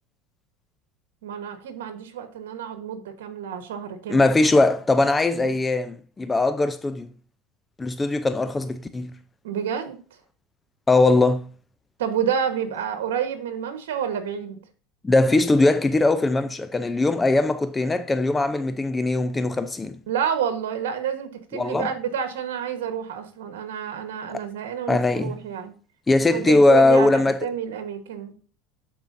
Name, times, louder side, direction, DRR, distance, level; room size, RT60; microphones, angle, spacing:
voice 1, 1.2-4.3 5.4-5.5 9.4-10.0 12.0-14.6 20.1-25.7 26.2-28.3, right 8 dB, 85° right, 1.2 m, -29 dB
voice 2, 4.1-7.1 7.8-9.1 10.9-11.5 15.0-20.0 21.5-21.9 24.9-25.4 26.1-27.5, left 2 dB, 15° left, 0.5 m, -20 dB
11.5 x 4.5 x 2.6 m
supercardioid pair, 105°, 0 cm